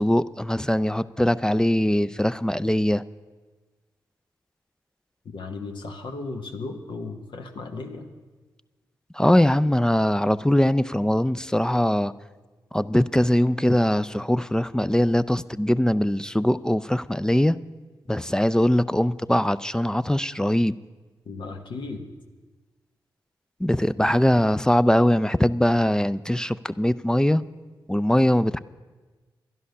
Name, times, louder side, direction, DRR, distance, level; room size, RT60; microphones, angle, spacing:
voice 1, 0.0-3.0 9.1-12.1 12.7-17.6 18.1-20.8 23.6-27.4 27.9-28.6, left 1 dB, 10° left, 15 dB, 0.4 m, -21 dB
voice 2, 5.2-8.1 21.2-22.1, left 3 dB, 70° left, 4 dB, 1.3 m, -35 dB
11.0 x 11.0 x 6.6 m, 1.3 s
cardioid pair, 50°, 9 cm